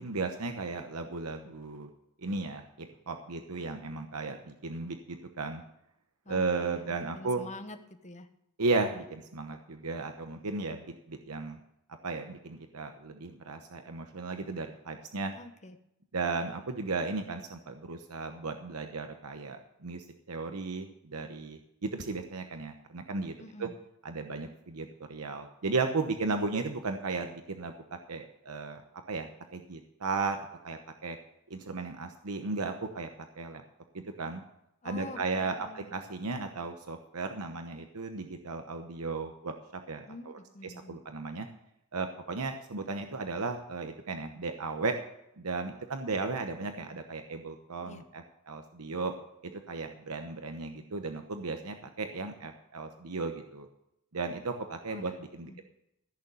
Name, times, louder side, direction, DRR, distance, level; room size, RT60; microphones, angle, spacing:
voice 1, 0.0-1.9 2.2-5.6 6.3-7.4 8.6-11.6 12.0-15.3 16.1-23.3 23.6-23.7 24.0-27.7 28.1-28.8 29.1-30.4 30.6-31.2 31.5-33.1 33.4-33.6 33.9-34.4 34.8-39.5 39.9-41.5 41.9-45.0 45.4-49.1 49.4-53.7 54.1-55.6, right 3 dB, 85° right, 6 dB, 1.0 m, -35 dB
voice 2, 6.2-8.3 15.3-15.8 23.4-23.7 34.8-35.9 40.0-41.0 47.8-48.0 54.9-55.1 55.4-55.6, left 2 dB, 30° left, 8 dB, 1.1 m, -46 dB
15.0 x 6.7 x 7.0 m, 0.81 s
head